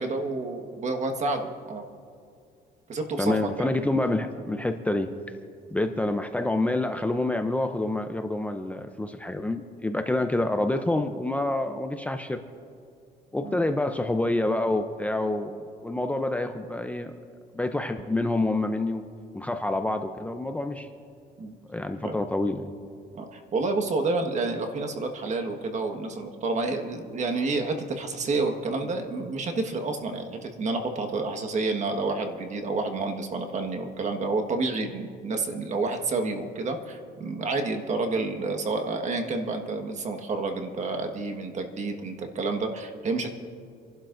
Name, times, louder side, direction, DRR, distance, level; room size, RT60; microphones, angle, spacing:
voice 1, 0.0-1.8 2.9-3.7 13.4-13.6 21.4-21.5 22.0-22.1 23.1-43.3, right 3 dB, 45° right, 5 dB, 1.5 m, -29 dB
voice 2, 3.2-5.1 5.7-12.4 13.3-17.1 17.5-19.0 19.3-20.9 21.7-22.6, left 2 dB, 10° left, 7 dB, 0.6 m, -27 dB
29.0 x 12.0 x 2.6 m, 2.3 s
cardioid pair, 110°, 17 cm